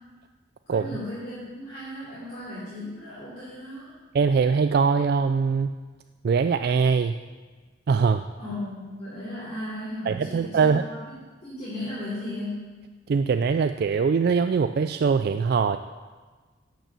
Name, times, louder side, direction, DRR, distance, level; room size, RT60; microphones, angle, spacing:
voice 1, 0.7-3.9 8.4-11.1 11.4-12.7, left 1 dB, 35° left, -11 dB, 3.1 m, -36 dB
voice 2, 4.1-5.7 6.2-7.2 7.9-8.3 10.1-10.8 13.1-15.8, right 5 dB, 55° right, 9 dB, 0.3 m, -22 dB
10.5 x 6.4 x 6.8 m, 1.4 s
head